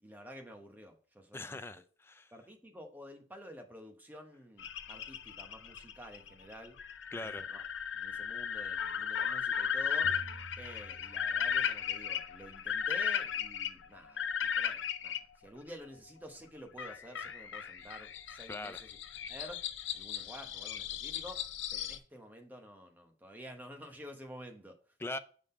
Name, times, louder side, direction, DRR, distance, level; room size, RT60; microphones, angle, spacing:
voice 1, 0.0-1.8 2.3-6.8 7.2-7.6 7.9-10.2 10.6-19.0 19.3-19.6 19.9-25.0, equal, 10° right, 4 dB, 0.9 m, -50 dB
voice 2, 1.3-2.3 7.1-7.4 18.5-18.8 25.0-25.2, left 2 dB, 15° left, 11 dB, 0.4 m, -41 dB
sound 1, 4.6-15.2 16.8-22.0, left 8 dB, 75° left, 0.5 m, -36 dB
sound 2, 10.0-12.0, right 2 dB, 60° right, 0.6 m, -50 dB
6.2 x 3.7 x 5.5 m, 0.43 s
head